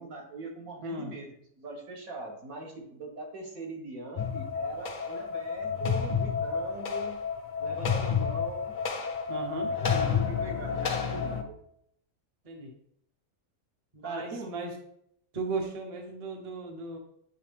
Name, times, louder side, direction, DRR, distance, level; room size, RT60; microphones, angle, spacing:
voice 1, 0.0-7.2 7.6-8.7 9.8-11.6 14.0-14.5, right 3 dB, 70° right, 0 dB, 1.7 m, -42 dB
voice 2, 0.8-1.1 9.3-10.2 12.4-12.7 13.9-14.7 15.3-17.0, right 3 dB, 30° right, 2 dB, 0.8 m, -36 dB
sound 1, 4.2-11.4, left 6 dB, 50° left, 0.6 m, -30 dB
8.7 x 3.3 x 3.4 m, 0.71 s
omnidirectional pair, 1.5 m